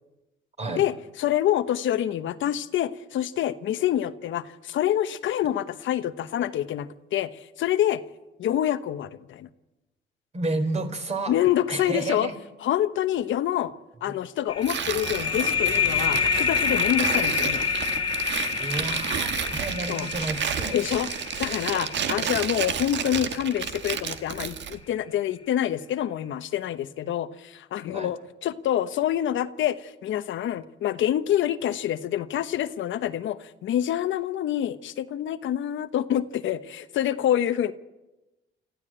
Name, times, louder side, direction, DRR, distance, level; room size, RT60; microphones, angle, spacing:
voice 1, 0.7-8.0 8.4-9.5 11.3-12.3 12.6-13.7 14.0-17.7 19.9-20.1 20.7-21.1 21.4-37.7, left 11 dB, 75° left, 12 dB, 1.0 m, -27 dB
voice 2, 10.3-11.3 11.7-12.4 18.6-20.8 27.9-28.1, right 2 dB, 35° right, 7 dB, 4.2 m, -31 dB
sound 1, 14.5-23.8, left 6 dB, 25° left, 1.9 m, -28 dB
Tearing, 14.6-24.8, right 8 dB, 65° right, 1.6 m, -31 dB
26.5 x 14.0 x 8.9 m, 1.1 s
cardioid pair, 90°, 20 cm